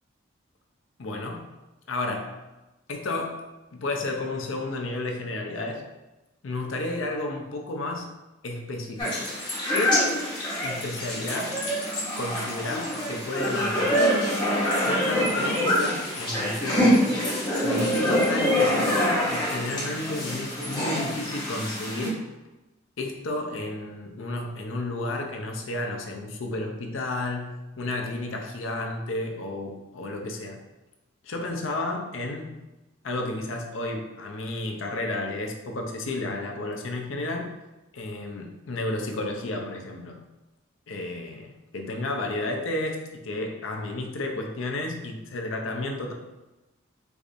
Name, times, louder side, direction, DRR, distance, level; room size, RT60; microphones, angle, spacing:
voice 1, 1.0-1.5 1.9-2.4 2.9-3.5 3.7-5.9 6.4-8.1 8.4-9.3 9.7-10.2 10.6-11.7 12.2-14.1 14.7-17.1 17.6-22.2 23.0-30.6 31.2-32.5 33.0-37.5 37.9-40.2 40.9-46.1, left 2 dB, 90° left, 2 dB, 0.6 m, -32 dB
sound 1, 9.0-22.1, equal, 20° left, 0.9 m, -25 dB
4.6 x 2.6 x 2.5 m, 1.0 s
head